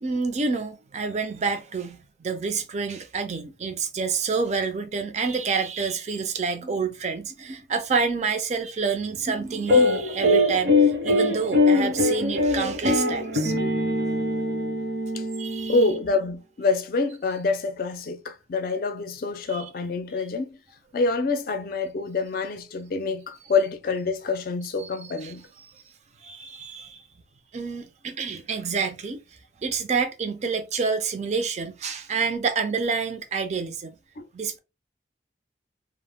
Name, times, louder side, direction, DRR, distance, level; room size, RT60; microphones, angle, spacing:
voice 1, 0.0-13.5 15.4-15.7 19.5-19.6 24.8-24.9 25.2-25.8 26.2-27.0 27.5-29.2 29.6-33.9 34.3-34.6, right 5 dB, 40° right, 0.4 m, -28 dB
sound 1, 9.7-16.2, left 2 dB, 70° right, 0.8 m, -22 dB
voice 2, 15.7-20.5 20.9-25.5 34.2-34.3, left 3 dB, 55° left, 0.4 m, -26 dB
2.1 x 2.0 x 3.4 m
head